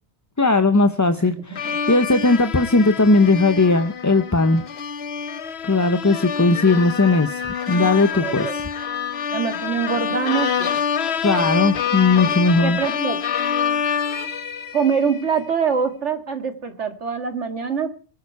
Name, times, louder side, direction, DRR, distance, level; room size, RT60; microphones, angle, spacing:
voice 1, 0.4-4.6 5.6-8.6 11.2-12.8, left 3 dB, 20° left, 9 dB, 0.6 m, -18 dB
sound 1, 1.6-15.2, left 7 dB, 65° left, 1.1 m, -26 dB
voice 2, 7.7-8.6 9.3-10.8 11.3-11.5 12.6-13.2 14.7-17.9, right 6 dB, 90° right, 7 dB, 2.3 m, -24 dB
23.5 x 8.7 x 4.7 m, 0.39 s
omnidirectional pair, 1.2 m